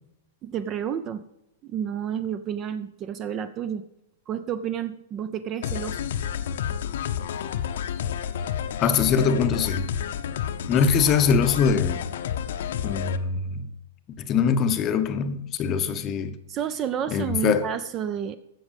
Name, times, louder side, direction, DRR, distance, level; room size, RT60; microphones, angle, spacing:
voice 1, 0.4-1.2 1.6-3.8 4.3-6.0 16.5-18.4, right 8 dB, 20° right, 0.4 m, -30 dB
sound 1, 5.6-13.2, left 9 dB, 60° left, 0.8 m, -30 dB
voice 2, 8.8-9.9 10.7-12.0 12.8-13.7 14.2-16.3 17.1-17.7, left 6 dB, 20° left, 0.7 m, -23 dB
15.5 x 6.2 x 5.2 m
supercardioid pair, 175°, 0 cm